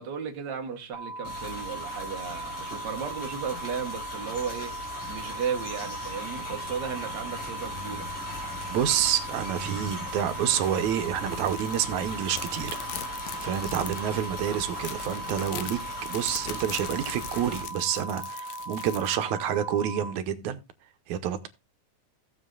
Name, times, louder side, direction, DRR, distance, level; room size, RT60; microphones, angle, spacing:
voice 1, 0.0-4.7 5.1-8.1, right 6 dB, 50° right, 1.4 m, -35 dB
sound 1, 0.9-20.1, right 2 dB, 30° left, 1.0 m, -39 dB
sound 2, 1.2-17.6, left 2 dB, 50° left, 5.0 m, -39 dB
voice 2, 8.7-12.7 13.4-15.8 16.1-20.6 21.1-21.5, right 10 dB, 80° right, 2.2 m, -28 dB
sound 3, 11.4-11.8 12.1-19.2, left 12 dB, 75° left, 1.8 m, -42 dB
16.5 x 7.4 x 2.4 m
omnidirectional pair, 3.4 m